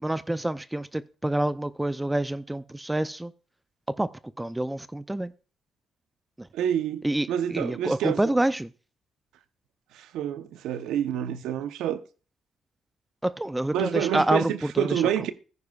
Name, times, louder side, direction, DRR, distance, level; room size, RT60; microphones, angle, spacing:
voice 1, 0.0-3.3 3.9-5.3 6.4-6.5 7.0-8.7 13.2-15.0, right 1 dB, 10° right, 0.5 m, -27 dB
voice 2, 6.5-8.4 9.9-12.0 13.7-15.3, right 10 dB, 85° right, 0.8 m, -28 dB
15.5 x 9.4 x 2.4 m
cardioid pair, 90°, 0 cm